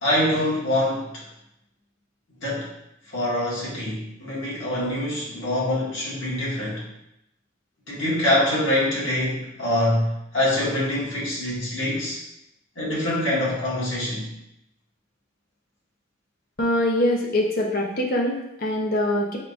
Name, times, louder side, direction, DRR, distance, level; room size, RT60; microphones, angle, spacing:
voice 1, 0.0-1.2 2.4-2.7 3.1-6.8 7.9-12.2 12.7-14.3, left 1 dB, 70° left, -7 dB, 1.6 m, -24 dB
voice 2, 16.6-19.4, left 1 dB, 45° left, 0 dB, 0.7 m, -23 dB
4.6 x 3.7 x 2.5 m, 0.83 s
head